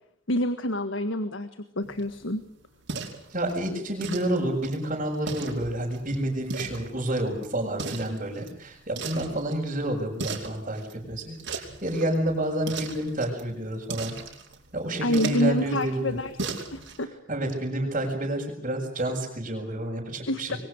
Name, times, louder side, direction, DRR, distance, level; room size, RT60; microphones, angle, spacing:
voice 1, 0.3-1.5 1.7-2.4 15.0-17.1 20.3-20.6, left 1 dB, 70° left, 10 dB, 1.6 m, -27 dB
sound 1, 1.8-17.0, right 4 dB, 60° right, 5.1 m, -39 dB
voice 2, 3.3-14.1 14.7-16.2 17.3-20.6, right 1 dB, 35° right, -5 dB, 6.3 m, -29 dB
27.5 x 23.5 x 6.7 m, 0.72 s
head